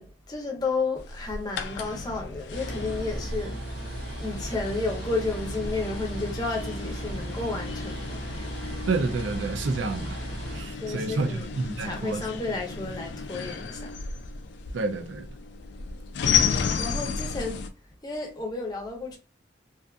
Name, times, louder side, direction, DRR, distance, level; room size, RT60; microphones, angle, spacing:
voice 1, 0.0-3.8 4.2-8.2 10.8-11.4 11.8-13.9 16.4-17.6 18.0-19.2, left 3 dB, 20° left, 0.6 m, -32 dB
sound 1, 1.0-17.7, left 6 dB, 65° left, 0.3 m, -33 dB
sound 2, 2.5-10.6, right 2 dB, 60° right, 1.0 m, -36 dB
voice 2, 8.9-10.2 10.5-12.3 14.7-15.3, right 3 dB, 80° right, 0.4 m, -29 dB
2.5 x 2.4 x 2.3 m
head